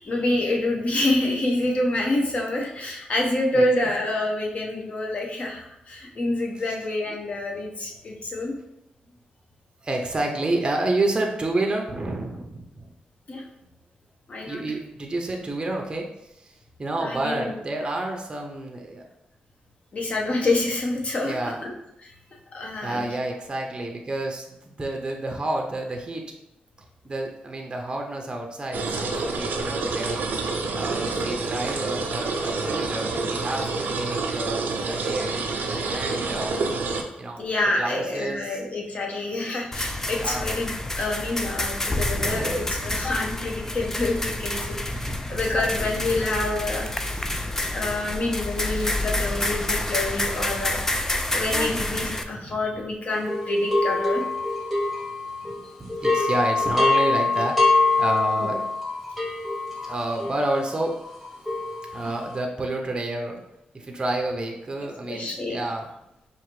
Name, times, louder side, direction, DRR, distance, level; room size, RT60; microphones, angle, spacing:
voice 1, 0.0-8.6 13.3-13.4 14.3-14.6 17.0-17.6 19.9-21.7 22.0-22.1 22.5-23.1 37.4-40.7 41.0-47.4 47.7-50.8 51.3-54.2 58.4-58.5 65.1-65.6, left 2 dB, 45° left, 0 dB, 0.9 m, -27 dB
voice 2, 9.8-12.9 14.4-16.1 16.4-16.5 16.8-19.0 21.2-21.6 22.8-26.2 27.0-30.2 30.7-36.6 36.9-37.5 37.8-38.6 40.2-40.4 42.1-42.8 44.9-46.2 47.2-47.8 48.7-49.3 51.6-52.6 55.4-58.7 59.8-61.0 61.9-63.4 63.7-65.9, right 2 dB, 30° right, 1 dB, 0.6 m, -30 dB
sound 1, 28.7-37.0, right 3 dB, 75° right, 0.5 m, -28 dB
sound 2, 39.7-52.2, left 1 dB, 15° left, 0.3 m, -28 dB
sound 3, 53.3-55.6 55.9-62.2, left 3 dB, ahead, 1.0 m, -24 dB
4.8 x 2.5 x 3.1 m, 0.84 s
cardioid pair, 100°, 3 cm